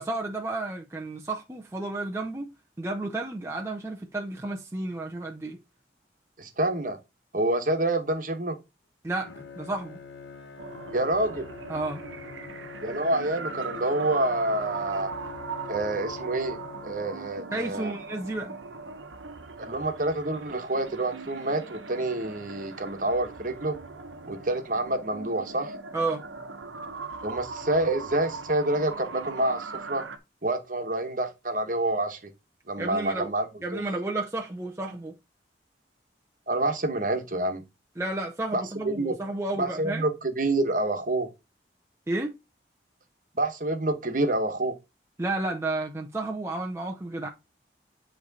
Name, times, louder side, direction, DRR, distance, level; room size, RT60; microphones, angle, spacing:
voice 1, 0.0-2.5 2.8-5.6 9.0-10.0 11.7-12.0 17.5-18.6 25.9-26.2 32.8-33.3 33.6-35.1 38.0-40.0 42.1-42.3 45.2-47.3, right 2 dB, 15° right, 0.6 m, -32 dB
voice 2, 6.4-7.0 7.3-8.6 10.9-11.5 12.8-15.1 15.7-16.6 16.8-17.9 19.6-23.8 24.3-25.7 27.2-30.0 30.4-32.2 32.7-33.8 36.5-37.6 38.5-39.2 39.6-41.3 43.3-44.8, right 2 dB, 45° right, 1.2 m, -27 dB
Bowed string instrument, 9.2-17.5, left 5 dB, 75° left, 1.3 m, -44 dB
sound 1, 10.6-30.2, right 4 dB, 90° right, 0.9 m, -40 dB
9.6 x 3.3 x 4.0 m
head